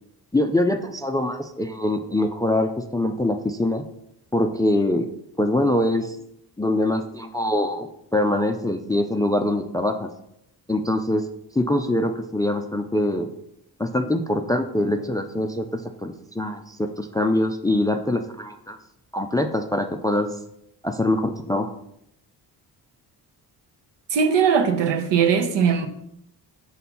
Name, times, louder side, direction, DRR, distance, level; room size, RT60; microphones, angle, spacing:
voice 1, 0.3-3.8 4.3-5.1 5.4-6.2 6.6-10.1 10.7-11.2 11.5-13.3 13.8-18.8 19.1-20.3 20.8-21.7, left 1 dB, 10° left, 0.3 m, -23 dB
voice 2, 24.1-25.9, right 7 dB, 75° right, 0.8 m, -20 dB
5.5 x 4.1 x 4.3 m
cardioid pair, 80°, 43 cm